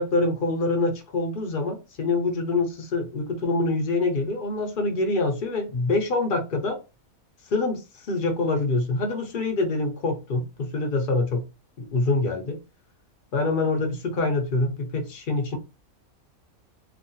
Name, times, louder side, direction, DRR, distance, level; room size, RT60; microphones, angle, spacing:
voice 1, 0.0-6.8 7.5-11.5 11.8-12.6 13.3-15.6, left 2 dB, 55° left, 0.6 m, -25 dB
3.1 x 2.2 x 2.6 m
omnidirectional pair, 1.5 m